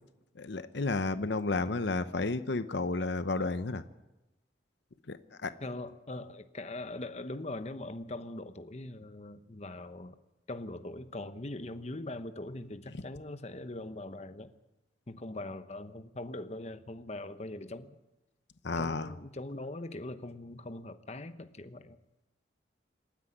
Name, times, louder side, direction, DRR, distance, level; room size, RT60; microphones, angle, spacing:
voice 1, 0.4-3.8 5.1-5.5 18.6-19.1, left 3 dB, 70° left, 12 dB, 0.8 m, -32 dB
voice 2, 5.6-10.2 10.5-14.5 15.1-18.0 18.8-22.0, left 2 dB, 35° left, 9 dB, 0.9 m, -41 dB
27.0 x 9.9 x 9.8 m, 1.0 s
head